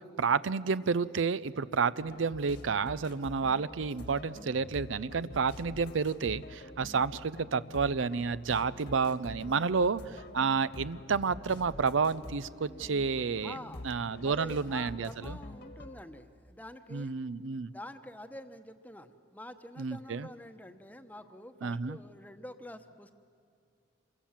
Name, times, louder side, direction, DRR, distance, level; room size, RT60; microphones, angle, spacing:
voice 1, 0.2-13.6 13.8-15.4 16.9-17.7 19.8-20.3 21.6-22.0, right 5 dB, 85° right, 16 dB, 0.6 m, -30 dB
sound 1, 2.0-16.0, left 1 dB, 55° left, 1.6 m, -47 dB
voice 2, 13.4-13.9 14.2-17.1 17.7-23.1, left 1 dB, 10° left, 8 dB, 1.0 m, -47 dB
27.0 x 23.5 x 7.3 m, 2.5 s
head